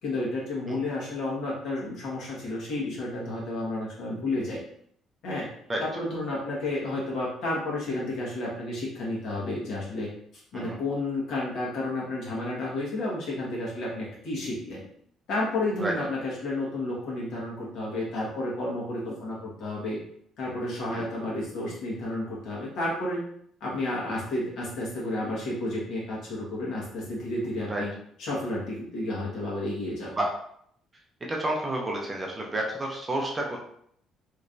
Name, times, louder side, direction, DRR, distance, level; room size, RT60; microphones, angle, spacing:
voice 1, 0.0-4.6 5.2-5.5 5.8-10.1 10.5-14.8 15.3-20.0 20.4-23.2 23.6-27.9 28.2-30.1, left 2 dB, 60° left, -5 dB, 1.5 m, -31 dB
voice 2, 31.3-33.6, right 1 dB, 15° right, -1 dB, 0.5 m, -30 dB
3.2 x 3.0 x 2.6 m, 0.67 s
cardioid pair, 165°, 0 cm